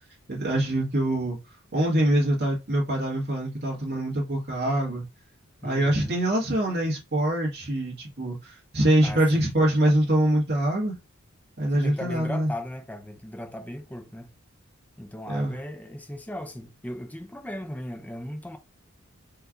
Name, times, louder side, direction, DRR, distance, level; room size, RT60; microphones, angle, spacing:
voice 1, 0.3-1.4 1.7-5.0 5.6-11.0 11.6-12.5 15.3-15.5, right 1 dB, 50° right, 1.8 m, -24 dB
voice 2, 5.6-6.2 9.0-9.5 9.9-10.0 11.7-14.3 15.0-18.6, left 1 dB, 5° left, 0.6 m, -37 dB
4.5 x 3.3 x 2.5 m
head